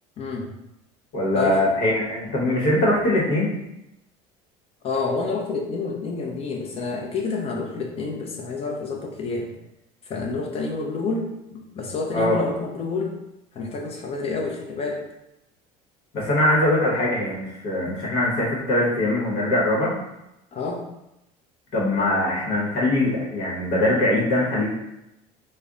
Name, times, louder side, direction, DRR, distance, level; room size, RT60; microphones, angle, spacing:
voice 1, 0.2-0.5 1.3-1.6 4.8-9.5 10.1-13.2 13.5-15.0 20.5-20.8, left 3 dB, 40° left, 1 dB, 0.7 m, -28 dB
voice 2, 1.1-3.5 12.1-12.4 16.1-20.0 21.7-24.7, left 1 dB, 65° left, -5 dB, 1.2 m, -22 dB
3.3 x 2.2 x 3.7 m, 0.88 s
supercardioid pair, 110°, 16 cm